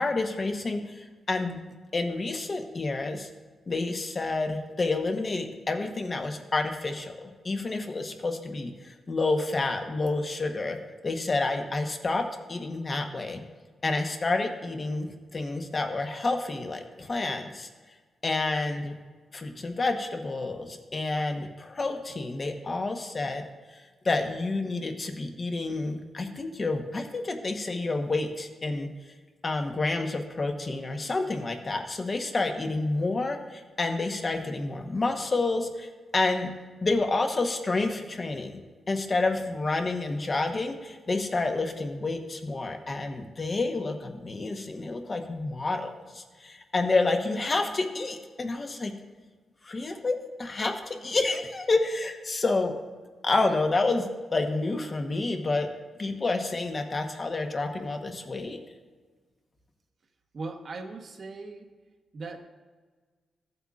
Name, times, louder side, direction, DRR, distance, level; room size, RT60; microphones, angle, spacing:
voice 1, 0.0-1.6 1.9-3.3 3.7-10.8 11.0-13.4 13.8-17.7 18.2-19.0 19.3-23.5 24.0-28.9 29.4-36.5 36.8-38.6 38.9-48.9 49.6-52.7 53.2-55.7 56.0-58.6, left 3 dB, 35° left, 5 dB, 1.0 m, -29 dB
voice 2, 60.3-61.7 62.1-62.5, right 3 dB, 50° right, 5 dB, 1.0 m, -39 dB
14.5 x 7.9 x 2.4 m, 1.4 s
cardioid pair, 100°, 0 cm